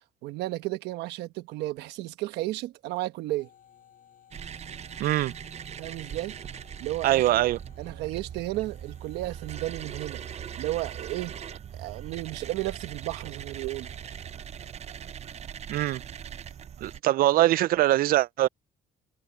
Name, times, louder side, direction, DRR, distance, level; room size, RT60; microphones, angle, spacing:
voice 1, 0.2-3.5 5.8-6.4 6.8-7.4 7.8-10.2 10.5-11.4 11.7-13.9 17.3-17.5, right 17 dB, 85° right, 1.1 m, -33 dB
Lift Servo, 3.4-10.6, left 9 dB, 55° left, 6.3 m, -59 dB
sound 1, 4.3-17.0, right 8 dB, 40° right, 0.8 m, -40 dB
voice 2, 5.0-5.3 7.0-7.6 15.7-16.0 16.8-18.5, right 15 dB, 60° right, 0.4 m, -23 dB
cardioid pair, 110°, 17 cm